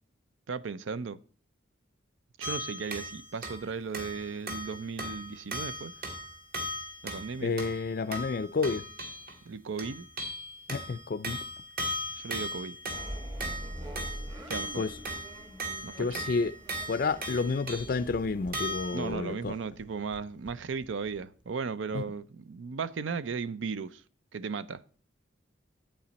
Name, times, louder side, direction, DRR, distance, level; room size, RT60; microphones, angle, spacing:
voice 1, 0.5-1.2 2.4-5.9 7.0-7.5 9.5-10.1 12.1-12.8 14.5-14.8 15.8-16.2 18.9-24.0 24.3-24.8, right 5 dB, 85° right, 0.5 m, -36 dB
sound 1, 2.4-3.7 3.9-9.4 9.8-18.0 18.5-19.1, equal, 50° right, 2.0 m, -38 dB
voice 2, 7.4-8.9 10.7-11.4 14.8-14.9 16.0-16.5 16.9-19.6 21.9-22.0, left 4 dB, 50° left, 0.4 m, -30 dB
sound 2, 12.9-21.5, equal, 25° right, 1.3 m, -44 dB
8.8 x 8.7 x 4.0 m
head